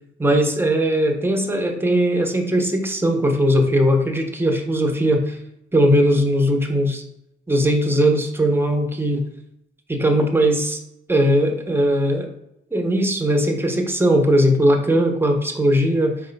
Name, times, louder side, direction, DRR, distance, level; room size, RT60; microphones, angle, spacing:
voice 1, 0.2-5.4 5.7-7.0 7.5-9.2 9.9-10.8 11.1-12.3 12.7-16.2, equal, 10° right, 3 dB, 0.7 m, -19 dB
4.9 x 4.3 x 2.2 m, 0.81 s
cardioid pair, 90°, 20 cm